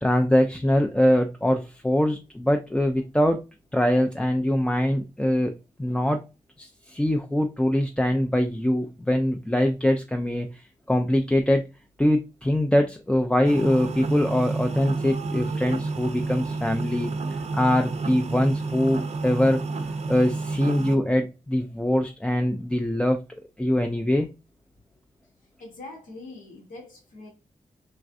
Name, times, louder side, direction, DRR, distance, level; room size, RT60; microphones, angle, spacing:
voice 1, 0.0-3.4 3.7-5.5 5.8-6.3 6.6-10.6 10.9-11.6 12.0-17.1 17.5-19.6 20.1-23.2 23.6-24.3, left 1 dB, 5° left, 0.4 m, -23 dB
sound 1, 13.4-21.0, right 3 dB, 50° right, 0.5 m, -30 dB
voice 2, 25.6-27.3, left 2 dB, 80° left, 1.2 m, -43 dB
3.2 x 2.5 x 2.4 m
cardioid pair, 60°, 14 cm